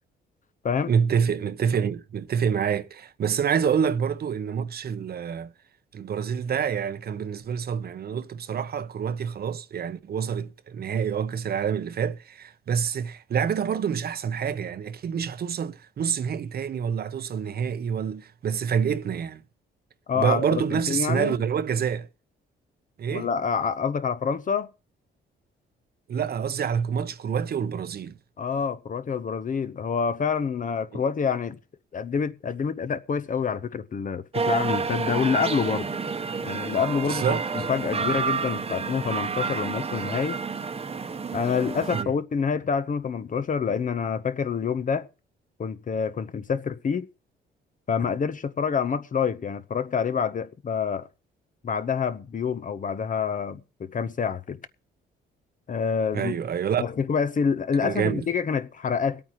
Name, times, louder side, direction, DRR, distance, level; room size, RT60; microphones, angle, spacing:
voice 1, 0.9-5.5 5.9-19.4 20.2-22.1 23.0-23.3 26.1-28.2 30.9-31.0 37.1-37.4 41.9-42.1 56.1-56.9 57.8-58.3, right 7 dB, 50° right, 0.8 m, -27 dB
voice 2, 20.1-21.4 23.1-24.7 28.4-31.6 31.9-35.9 36.4-40.4 41.3-45.1 45.6-47.1 47.9-51.1 51.6-54.6 55.7-56.3 56.8-59.2, left 6 dB, 40° left, 0.9 m, -27 dB
sound 1, 34.3-42.0, right 5 dB, 30° right, 1.0 m, -29 dB
22.0 x 8.8 x 3.1 m
cardioid pair, 90°, 20 cm